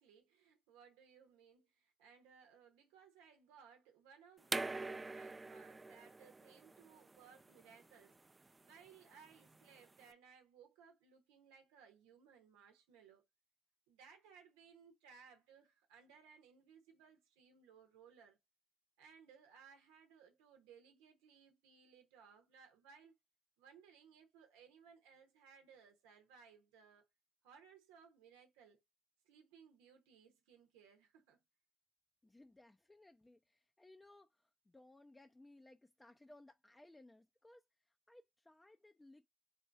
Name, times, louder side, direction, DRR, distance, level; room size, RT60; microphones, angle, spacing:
voice 1, 0.0-13.2 13.9-18.4 19.0-23.1 23.6-27.1 27.4-28.8 29.2-31.4, right 6 dB, 90° right, 0.9 m, -63 dB
sound 1, 4.4-10.0, right 3 dB, 30° right, 0.5 m, -45 dB
voice 2, 32.2-39.3, left 2 dB, 20° left, 0.6 m, -62 dB
4.3 x 2.6 x 4.4 m
hypercardioid pair, 45°, 0 cm